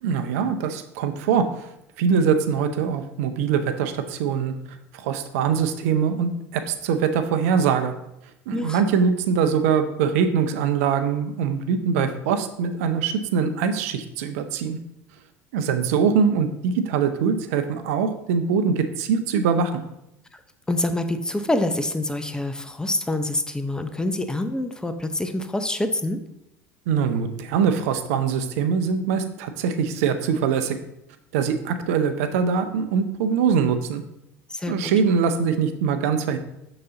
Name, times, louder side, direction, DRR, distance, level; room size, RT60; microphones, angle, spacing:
voice 1, 0.0-1.7 2.0-4.5 4.9-7.9 8.5-14.8 15.5-19.8 26.9-30.8 31.3-34.0 34.7-36.4, right 6 dB, 80° right, 9 dB, 0.6 m, -23 dB
voice 2, 8.5-8.8 20.3-20.4 20.7-26.2 34.5-34.9, left 1 dB, 10° left, 8 dB, 0.6 m, -26 dB
6.8 x 3.9 x 3.9 m, 0.85 s
hypercardioid pair, 80°, 8 cm